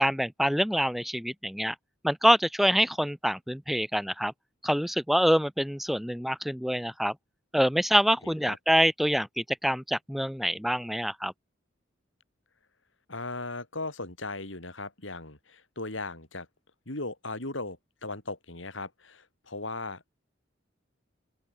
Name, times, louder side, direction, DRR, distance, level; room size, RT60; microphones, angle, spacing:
voice 1, 0.0-1.7 2.0-4.3 4.6-7.1 7.5-11.3, equal, ahead, 3.4 m, -26 dB
voice 2, 8.2-8.6 13.1-16.5 16.9-20.2, left 2 dB, 85° left, 5.6 m, -37 dB
open air
head